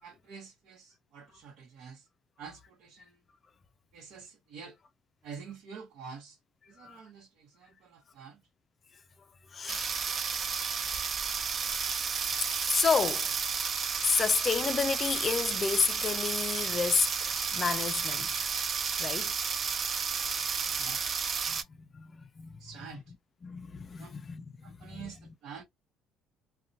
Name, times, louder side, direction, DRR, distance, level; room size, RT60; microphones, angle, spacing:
voice 1, 0.0-2.1 2.4-3.2 3.9-4.8 5.2-6.4 6.7-8.4 20.8-21.0 22.6-23.1 24.0-24.1 24.6-25.6, right 6 dB, 65° right, 0.9 m, -47 dB
voice 2, 9.5-9.9 10.6-10.8 11.7-11.9 12.4-13.3 14.0-18.5 19.0-19.3 21.5-22.6 23.4-25.1, left 5 dB, 35° left, 0.4 m, -31 dB
sound 1, 9.7-21.6, right 6 dB, 35° right, 0.4 m, -32 dB
2.5 x 2.2 x 2.6 m
cardioid pair, 115°, 0 cm